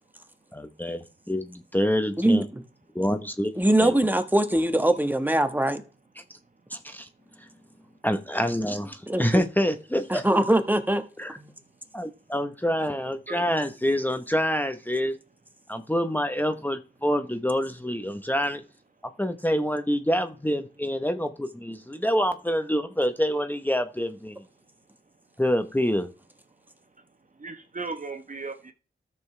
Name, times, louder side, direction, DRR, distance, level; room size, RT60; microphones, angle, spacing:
voice 1, 0.5-2.4 2.9-3.5 3.8-4.0 6.7-7.1 7.4-7.5 8.0-10.2 11.2-11.4 11.9-15.1 15.7-18.6 19.2-24.4 25.4-26.1, equal, 10° left, 1.0 m, -26 dB
voice 2, 3.6-5.8 9.1-9.4 10.1-11.0, right 1 dB, 10° right, 1.5 m, -22 dB
voice 3, 13.1-13.5 27.0-27.1 27.3-28.7, right 4 dB, 40° right, 1.1 m, -37 dB
13.0 x 7.0 x 3.3 m
cardioid pair, 60°, 21 cm